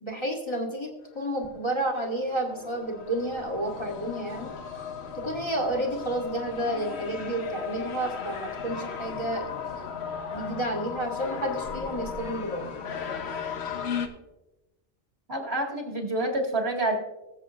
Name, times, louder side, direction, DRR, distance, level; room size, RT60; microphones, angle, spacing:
voice 1, 0.0-4.5 5.1-9.6 10.3-12.6, right 1 dB, 20° left, -1 dB, 1.5 m, -31 dB
sound 1, 1.3-1.4 2.0-14.1, left 6 dB, 60° left, 1.1 m, -36 dB
voice 2, 15.3-17.0, right 2 dB, 55° right, 1 dB, 2.1 m, -28 dB
19.5 x 7.6 x 2.4 m, 1.0 s
omnidirectional pair, 1.3 m